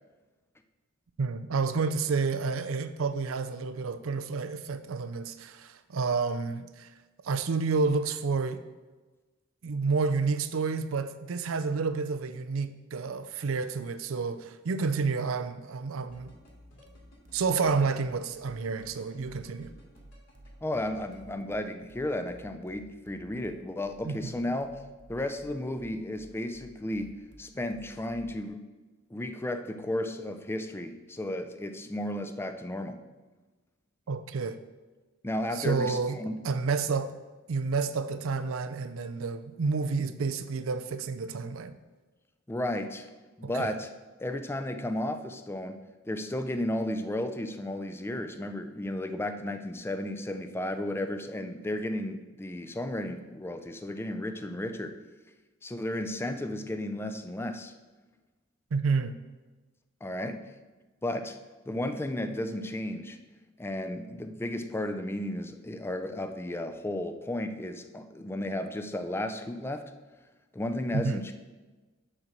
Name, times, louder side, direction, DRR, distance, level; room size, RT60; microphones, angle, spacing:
voice 1, 1.2-6.9 7.2-8.6 9.6-16.3 17.3-19.7 24.0-24.3 34.1-34.6 35.6-36.2 36.4-37.2 37.5-41.7 43.4-43.7 58.7-59.1 70.9-71.2, right 4 dB, 85° right, 0.5 m, -30 dB
sound 1, 15.9-21.2, left 1 dB, 70° left, 2.6 m, -58 dB
sound 2, 16.1-28.5, equal, 60° right, 1.0 m, -54 dB
voice 2, 20.6-24.7 25.1-28.7 29.1-33.0 35.2-36.3 42.5-43.1 43.4-43.9 44.2-55.0 55.6-57.7 60.0-60.4 61.0-61.4 61.7-63.2 63.6-69.9 70.5-71.3, left 1 dB, 10° left, 0.4 m, -33 dB
6.5 x 4.4 x 6.0 m
head